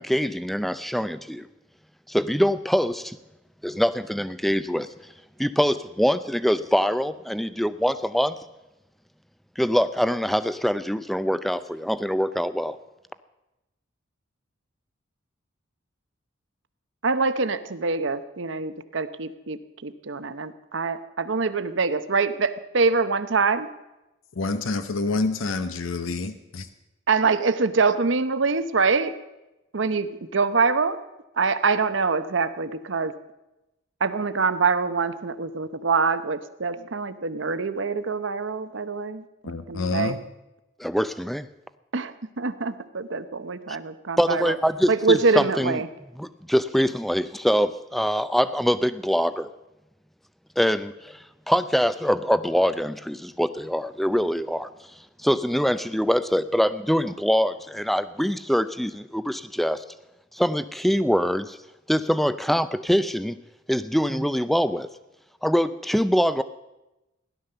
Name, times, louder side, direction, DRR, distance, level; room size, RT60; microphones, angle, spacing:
voice 1, 0.0-1.5 2.1-3.2 3.6-4.9 5.4-8.4 9.6-12.8 40.8-41.5 44.2-45.8 46.2-49.5 50.6-54.7 55.2-59.8 60.3-61.6 61.9-63.4 63.7-64.9 65.4-66.4, equal, ahead, 14 dB, 0.4 m, -24 dB
voice 2, 17.0-23.7 27.1-29.1 29.7-31.0 31.4-33.1 34.0-39.2 39.7-40.2 41.9-44.6 44.9-45.9, right 4 dB, 65° right, 12 dB, 0.8 m, -24 dB
voice 3, 24.3-26.7 39.4-40.2, left 3 dB, 80° left, 10 dB, 0.8 m, -28 dB
16.0 x 11.5 x 6.8 m, 0.98 s
head